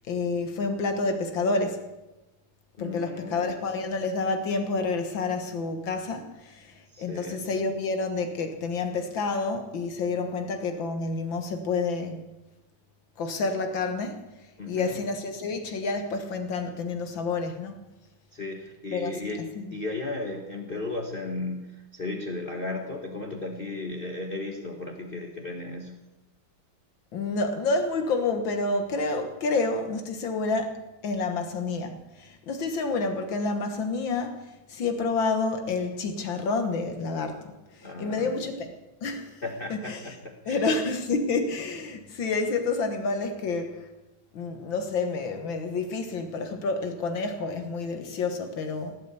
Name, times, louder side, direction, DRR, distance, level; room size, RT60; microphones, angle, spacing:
voice 1, 0.1-1.9 2.8-12.2 13.2-14.2 14.7-17.8 18.9-19.7 27.1-37.4 37.7-38.8 39.0-39.4 39.7-40.2 40.5-43.9 44.3-49.0, left 3 dB, 70° left, 6 dB, 2.1 m, -29 dB
voice 2, 2.8-3.5 6.9-7.4 14.6-15.0 18.3-19.4 19.7-25.9 37.8-38.5 39.4-40.6, left 2 dB, 30° left, 1 dB, 1.4 m, -35 dB
17.0 x 8.7 x 8.2 m, 1.0 s
omnidirectional pair, 2.2 m